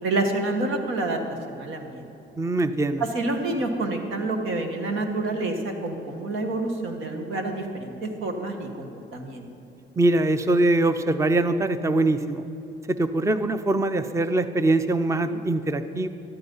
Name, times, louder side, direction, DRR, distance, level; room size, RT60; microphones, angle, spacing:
voice 1, 0.0-1.2 1.5-2.1 3.1-9.5, right 2 dB, 85° right, 4 dB, 1.7 m, -28 dB
voice 2, 2.4-3.0 10.0-12.4 12.9-16.1, right 2 dB, 15° right, 11 dB, 0.6 m, -23 dB
13.0 x 13.0 x 5.5 m, 2.9 s
cardioid pair, 90°, 20 cm